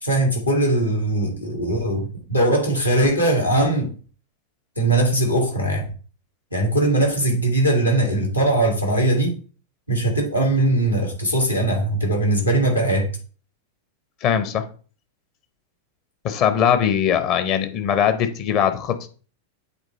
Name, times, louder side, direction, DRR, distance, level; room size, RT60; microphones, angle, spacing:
voice 1, 0.0-3.9 4.8-5.9 6.5-9.3 9.9-13.1, right 1 dB, 85° left, 2.1 m, -20 dB
voice 2, 14.2-14.7 16.2-19.1, left 8 dB, 40° left, 0.8 m, -20 dB
8.0 x 3.0 x 4.2 m
figure-of-eight pair, 90°, 0 cm